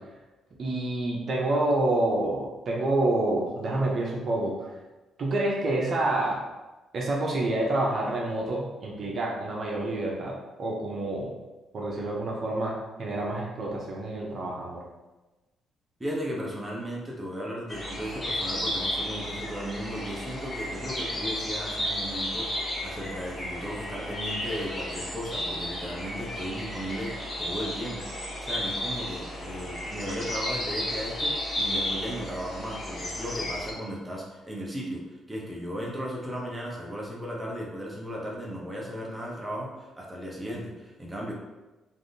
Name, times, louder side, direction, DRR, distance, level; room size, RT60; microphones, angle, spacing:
voice 1, 0.6-4.7 5.2-6.4 6.9-11.3 11.7-14.8, right 2 dB, 55° right, -2 dB, 0.7 m, -28 dB
voice 2, 16.0-28.0 28.4-41.3, equal, 10° right, -3 dB, 0.7 m, -36 dB
sound 1, 17.7-33.7, left 1 dB, 30° left, 1.2 m, -33 dB
3.3 x 2.6 x 2.6 m, 1.1 s
cardioid pair, 90°, 0 cm